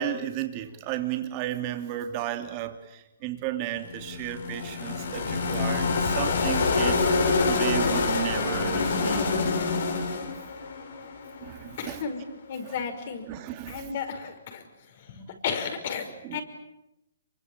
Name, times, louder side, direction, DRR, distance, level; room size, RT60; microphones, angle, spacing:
voice 1, 0.0-7.1 7.4-9.3 11.4-12.1 12.6-12.8 13.3-14.0 16.2-16.4, right 11 dB, 30° right, 6 dB, 3.0 m, -33 dB
sound 1, 3.8-11.9, left 4 dB, 65° left, 6.1 m, -26 dB
voice 2, 11.8-12.2 12.5-13.3 13.7-14.6 15.1-16.4, left 6 dB, 50° left, 6 dB, 5.7 m, -33 dB
26.5 x 24.0 x 8.9 m, 0.91 s
hypercardioid pair, 145°, 0 cm